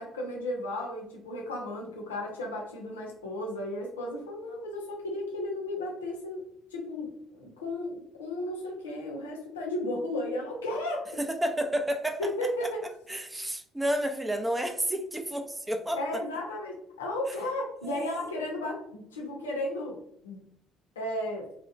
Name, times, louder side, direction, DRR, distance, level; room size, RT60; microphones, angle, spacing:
voice 1, 0.0-6.4 6.7-11.2 12.2-12.8 16.0-20.0 20.2-20.4 21.0-21.5, left 1 dB, 80° left, -1 dB, 0.6 m, -34 dB
voice 2, 11.2-12.2 12.6-12.7 13.1-16.2 17.8-18.1, right 1 dB, 15° right, 6 dB, 0.4 m, -30 dB
2.8 x 2.1 x 2.5 m, 0.75 s
figure-of-eight pair, 50°, 0 cm